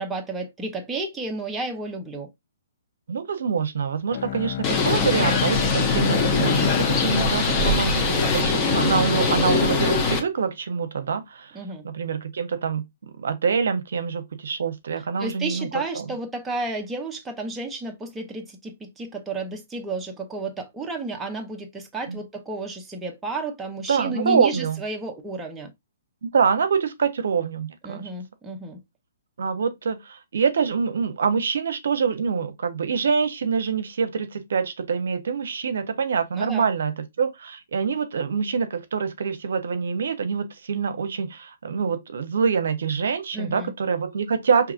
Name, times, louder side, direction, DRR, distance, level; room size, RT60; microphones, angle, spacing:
voice 1, 0.0-2.3 11.5-11.8 15.2-25.7 27.8-28.8 36.3-36.7 43.3-43.7, right 2 dB, 10° right, 0.7 m, -32 dB
voice 2, 3.1-11.5 11.8-12.8 13.2-15.7 15.9-16.0 22.1-22.2 23.9-24.8 26.2-28.1 29.4-44.7, right 6 dB, 75° right, 0.7 m, -25 dB
Bowed string instrument, 4.1-9.1, left 13 dB, 45° left, 0.4 m, -30 dB
Bird, 4.6-10.2, left 4 dB, 25° left, 0.9 m, -22 dB
4.8 x 2.9 x 2.4 m
hypercardioid pair, 150°, 0 cm